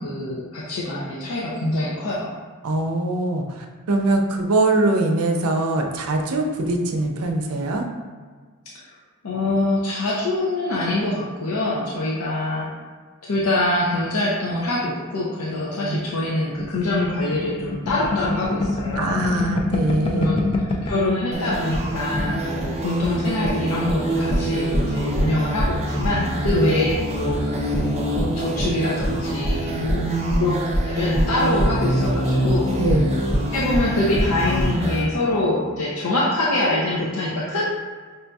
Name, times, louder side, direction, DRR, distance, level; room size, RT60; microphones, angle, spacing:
voice 1, 0.0-2.3 8.7-8.9 9.2-12.7 13.2-19.2 20.1-20.4 20.8-27.7 28.0-32.7 33.5-37.6, left 2 dB, 80° left, -5 dB, 0.6 m, -24 dB
voice 2, 2.6-7.8 15.8-16.0 19.0-20.3 26.5-26.7 29.7-30.6 32.8-33.3, right 2 dB, 85° right, 3 dB, 0.5 m, -23 dB
sound 1, 16.6-21.1 21.5-21.6 21.8-22.4, left 2 dB, 25° left, 0.4 m, -26 dB
sound 2, 21.3-35.0, equal, 30° right, 0.6 m, -24 dB
5.4 x 2.6 x 2.3 m, 1.5 s
head